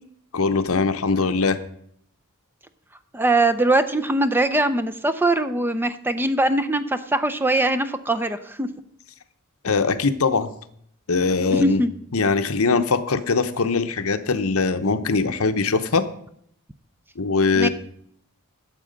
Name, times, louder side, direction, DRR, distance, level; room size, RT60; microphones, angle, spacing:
voice 1, 0.3-1.6 9.6-10.5 11.1-11.8 12.1-16.1 17.2-17.7, left 4 dB, 70° left, 10 dB, 0.9 m, -21 dB
voice 2, 3.1-8.7 11.5-11.9 17.6-17.7, right 2 dB, 10° right, 10 dB, 0.5 m, -21 dB
13.0 x 7.5 x 5.2 m, 0.69 s
head